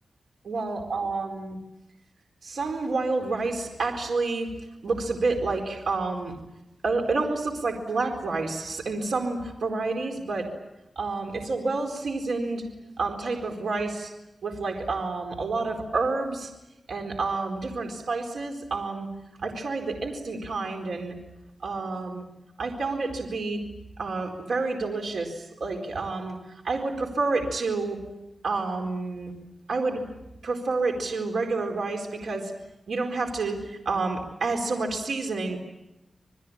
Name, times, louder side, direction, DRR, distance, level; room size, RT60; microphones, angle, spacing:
voice 1, 0.4-1.6 2.4-4.5 4.8-6.3 6.8-10.5 11.0-12.7 13.0-14.1 14.4-16.5 16.9-19.1 19.4-21.2 21.6-22.2 22.6-23.6 24.0-28.0 28.4-29.3 29.7-30.0 30.4-32.5 32.9-35.6, right 3 dB, 85° right, 3 dB, 4.3 m, -29 dB
28.5 x 21.0 x 8.8 m, 0.94 s
wide cardioid pair, 85°, 0 cm